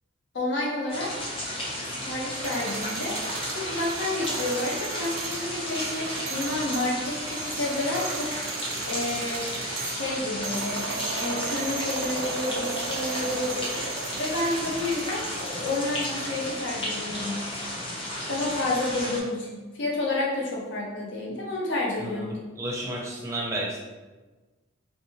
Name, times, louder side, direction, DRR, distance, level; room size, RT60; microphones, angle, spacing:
voice 1, 0.3-1.1 2.1-3.2 3.5-8.3 8.9-9.5 9.9-10.9 11.2-17.4 18.3-22.4, left 2 dB, 60° left, -3 dB, 0.7 m, -30 dB
sound 1, 0.9-19.2, left 1 dB, 25° left, 0.7 m, -33 dB
sound 2, 2.2-16.4, right 5 dB, 90° right, 0.4 m, -36 dB
voice 2, 22.6-23.8, right 1 dB, 15° right, -4 dB, 0.6 m, -31 dB
3.2 x 2.9 x 3.1 m, 1.2 s
head